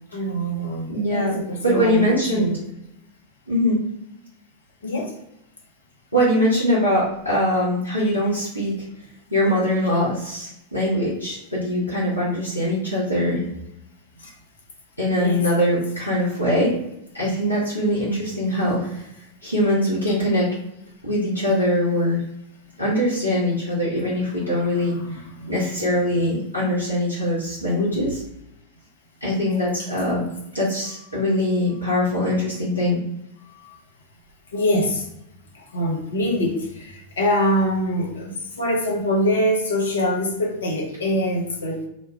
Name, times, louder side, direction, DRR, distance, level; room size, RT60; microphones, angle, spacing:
voice 1, 0.1-2.6 4.8-5.1 14.2-14.3 15.2-15.4 24.0-24.1 24.9-25.5 33.5-33.8 34.5-35.1 35.5-41.8, equal, 65° left, 1 dB, 0.7 m, -24 dB
voice 2, 0.9-1.4 1.6-2.5 3.5-3.8 6.1-8.7 9.3-13.4 15.0-16.7 17.1-19.1 19.4-20.5 21.0-22.2 22.8-25.2 25.5-28.2 29.2-30.3 30.5-33.0, left 1 dB, 90° right, -8 dB, 0.9 m, -22 dB
3.1 x 2.2 x 4.1 m, 0.81 s
figure-of-eight pair, 90°, 0 cm